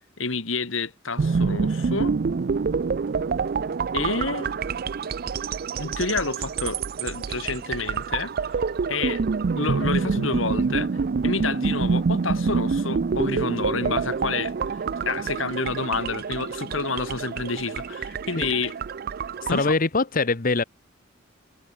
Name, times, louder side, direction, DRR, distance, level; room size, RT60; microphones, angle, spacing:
voice 1, 0.2-2.2 3.9-4.5 5.8-8.3 8.9-9.3 9.6-10.9 11.2-18.7 19.5-19.7, left 4 dB, 75° left, 2.2 m, -29 dB
sound 1, 1.2-19.8, right 5 dB, 50° right, 0.4 m, -27 dB
voice 2, 19.4-20.6, left 3 dB, 45° left, 1.0 m, -23 dB
head